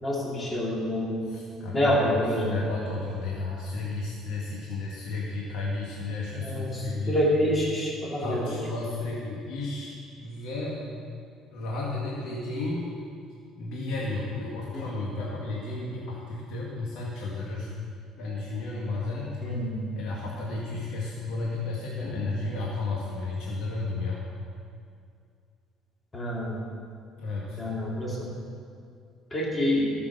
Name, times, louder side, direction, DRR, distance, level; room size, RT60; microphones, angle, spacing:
voice 1, 0.0-1.3 1.7-2.6 6.3-8.6 14.7-14.9 19.4-19.9 22.0-22.3 26.1-26.6 27.6-28.3 29.3-29.9, equal, 20° left, -4 dB, 2.6 m, -27 dB
voice 2, 1.3-7.2 8.2-11.0 11.5-12.9 13.6-17.7 18.2-19.5 20.0-24.2 27.2-27.6, left 3 dB, 75° left, -4 dB, 1.8 m, -33 dB
13.5 x 6.7 x 6.7 m, 2.3 s
cardioid pair, 110°, 0 cm